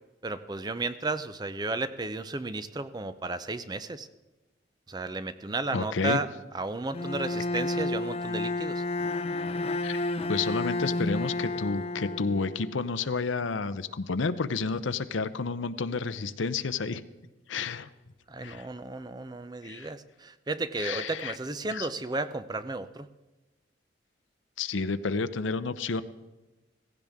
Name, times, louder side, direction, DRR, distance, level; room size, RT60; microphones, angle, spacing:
voice 1, 0.2-4.1 4.9-6.3 6.5-8.8 18.3-23.1, right 2 dB, 20° right, 12 dB, 0.5 m, -33 dB
voice 2, 5.7-6.2 9.8-10.0 10.3-17.0 17.5-17.9 18.4-18.6 19.6-19.9 20.8-21.4 21.7-21.9 24.6-26.0, left 4 dB, 80° left, 12 dB, 0.7 m, -30 dB
Bowed string instrument, 6.9-12.9, left 2 dB, 30° left, 0.5 m, -31 dB
16.5 x 15.5 x 3.6 m, 1.1 s
head